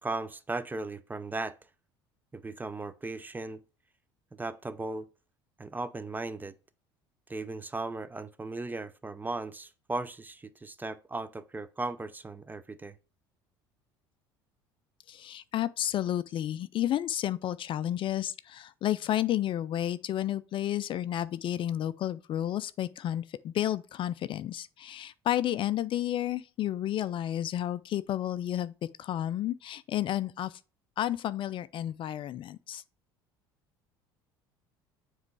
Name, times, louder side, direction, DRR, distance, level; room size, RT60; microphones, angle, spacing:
voice 1, 0.0-1.6 2.3-3.6 4.4-5.1 5.6-6.5 7.3-13.0, right 2 dB, 15° right, 0.5 m, -37 dB
voice 2, 15.1-28.7 29.0-30.6 31.0-32.8, left 12 dB, 45° left, 0.3 m, -31 dB
7.3 x 3.1 x 4.7 m
hypercardioid pair, 70°, 12 cm